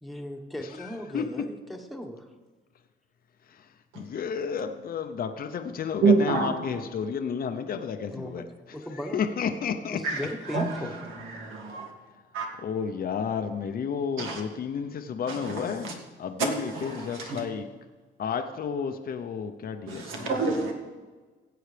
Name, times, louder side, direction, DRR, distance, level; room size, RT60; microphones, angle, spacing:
voice 1, 0.0-2.3 8.1-8.5 8.7-9.2 9.9-11.3, equal, ahead, 1.2 m, -37 dB
voice 2, 0.6-1.3 3.4-10.0 12.6-17.7 18.2-20.3, left 6 dB, 50° left, 0.6 m, -32 dB
voice 3, 6.0-6.6 10.0-11.9 12.3-12.5 14.2-14.4 15.3-15.9 16.4-17.4 19.9-20.7, right 4 dB, 85° right, 1.9 m, -28 dB
16.5 x 7.8 x 3.3 m
cardioid pair, 90°, 20 cm